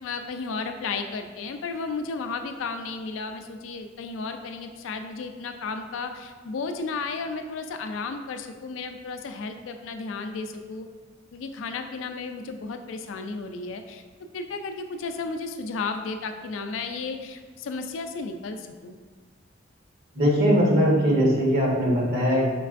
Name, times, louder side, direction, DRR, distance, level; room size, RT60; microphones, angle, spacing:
voice 1, 0.0-10.9 11.3-14.0 14.3-19.0, left 4 dB, 80° left, 7 dB, 0.4 m, -33 dB
voice 2, 20.1-22.4, equal, 55° right, -4 dB, 1.1 m, -20 dB
5.2 x 3.2 x 2.5 m, 1.4 s
head